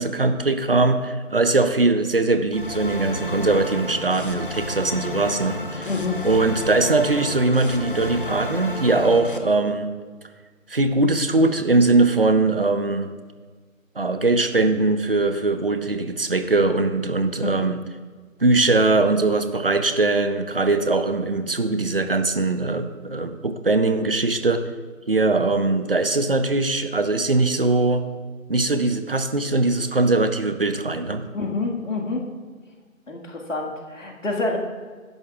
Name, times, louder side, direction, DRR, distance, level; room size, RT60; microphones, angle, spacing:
voice 1, 0.0-5.9 6.2-9.9 10.7-13.1 14.0-17.8 18.4-24.6 25.1-28.0 28.5-31.2, right 3 dB, 45° right, 9 dB, 0.7 m, -21 dB
sound 1, 2.5-9.4, left 1 dB, 40° left, 0.7 m, -31 dB
voice 2, 5.9-6.2 17.4-17.5 31.3-32.2 33.1-34.6, left 3 dB, 65° left, -1 dB, 1.9 m, -27 dB
14.5 x 10.5 x 2.4 m, 1.5 s
figure-of-eight pair, 170°, 41 cm